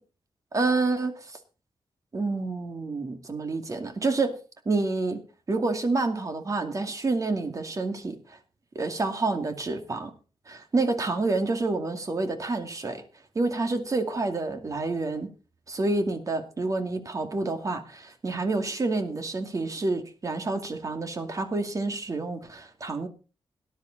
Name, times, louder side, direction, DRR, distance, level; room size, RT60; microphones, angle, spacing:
voice 1, 0.5-1.4 2.1-4.4 4.7-5.2 5.5-8.4 8.7-10.1 10.5-13.0 13.3-15.3 15.7-23.1, right 3 dB, 35° right, 7 dB, 2.3 m, -28 dB
19.0 x 10.5 x 4.1 m, 0.34 s
wide cardioid pair, 160°, 10 cm